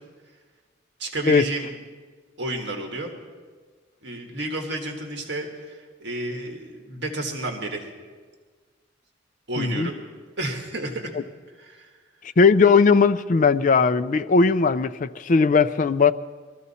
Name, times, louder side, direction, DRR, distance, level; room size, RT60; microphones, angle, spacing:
voice 1, 1.0-1.7 2.4-3.1 4.0-7.9 9.5-10.0 10.4-11.1 11.6-11.9, right 2 dB, 60° right, 1.6 m, -31 dB
voice 2, 9.6-9.9 12.4-16.1, left 4 dB, 40° left, 0.4 m, -18 dB
21.5 x 14.0 x 4.2 m
head